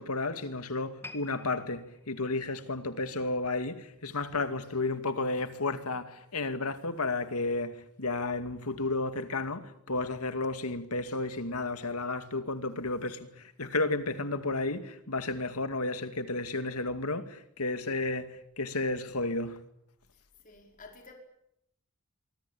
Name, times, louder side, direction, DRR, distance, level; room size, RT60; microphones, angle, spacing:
voice 1, 0.0-19.6, left 2 dB, 90° left, 2.3 m, -32 dB
sound 1, 1.0-4.3 4.6-4.9 5.6-5.7, left 3 dB, 10° left, 1.7 m, -52 dB
voice 2, 20.4-21.1, left 3 dB, 35° left, 5.2 m, -51 dB
24.5 x 24.0 x 8.7 m
head